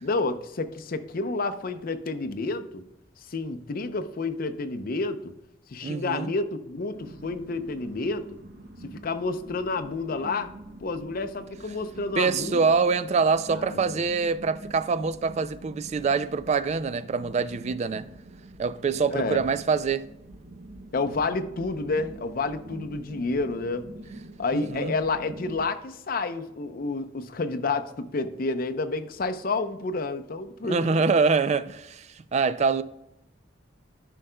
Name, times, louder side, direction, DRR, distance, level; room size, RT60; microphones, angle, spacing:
voice 1, 0.0-2.9 3.3-5.3 5.7-8.4 8.8-10.5 10.8-12.7 13.5-14.0 19.1-19.4 20.9-23.8 24.4-31.0, left 3 dB, 50° left, 0.6 m, -30 dB
voice 2, 5.8-6.3 12.2-18.1 18.6-20.1 24.5-24.9 30.6-32.8, right 5 dB, 40° right, 0.3 m, -25 dB
sound 1, 6.9-25.6, right 2 dB, 55° right, 0.8 m, -45 dB
11.0 x 5.5 x 2.2 m
head